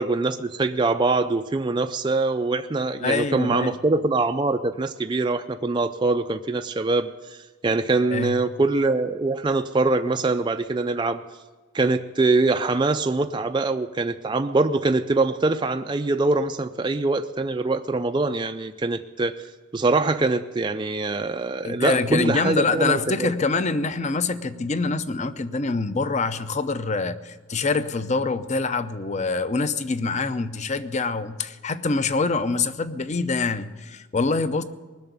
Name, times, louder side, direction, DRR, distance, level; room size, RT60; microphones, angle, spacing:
voice 1, 0.0-7.4 7.6-11.2 11.7-19.3 19.7-23.3, right 3 dB, 20° right, 6 dB, 0.4 m, -23 dB
voice 2, 3.0-3.7 8.1-8.4 21.6-34.6, left 3 dB, 35° left, 12 dB, 0.6 m, -25 dB
19.5 x 6.9 x 9.4 m, 1.3 s
head